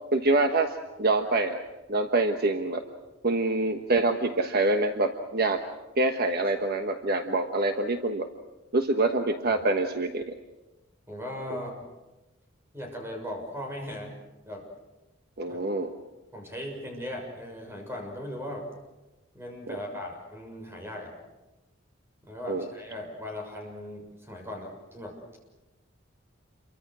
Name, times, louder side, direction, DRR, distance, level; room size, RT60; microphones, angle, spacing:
voice 1, 0.1-1.6 1.9-2.8 3.2-5.6 6.0-8.3 8.7-10.3 11.5-11.6 15.4-15.9 19.7-19.8 22.5-22.6, right 2 dB, 50° right, 6 dB, 1.3 m, -26 dB
voice 2, 11.1-11.9 12.7-14.1 14.5-14.6 15.5-15.6 16.3-18.7 19.3-21.1 22.2-25.2, left 1 dB, 15° right, 1 dB, 6.6 m, -38 dB
28.5 x 24.0 x 6.3 m, 1.1 s
head